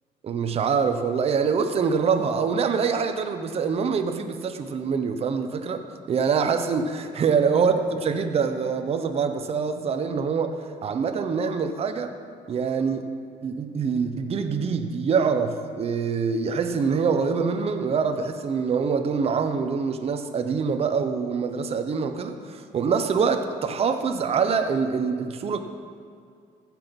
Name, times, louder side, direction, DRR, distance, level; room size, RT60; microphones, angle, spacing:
voice 1, 0.2-12.1 12.5-13.1 13.4-25.6, right 5 dB, 45° right, 7 dB, 0.8 m, -25 dB
15.0 x 6.1 x 5.3 m, 2.3 s
cardioid pair, 120°, 15 cm